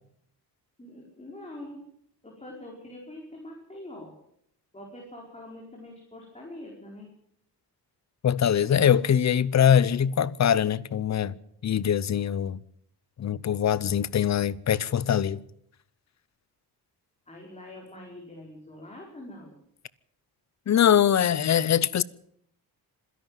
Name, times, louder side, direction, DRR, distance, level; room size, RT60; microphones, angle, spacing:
voice 1, 0.8-1.8 2.2-4.1 4.7-7.1 17.3-19.5, left 1 dB, 15° left, 5.0 m, -44 dB
voice 2, 8.2-11.3 11.6-12.6 13.2-15.4 20.7-22.0, left 9 dB, 45° left, 0.8 m, -22 dB
26.5 x 11.5 x 9.1 m
wide cardioid pair, 150°, 39 cm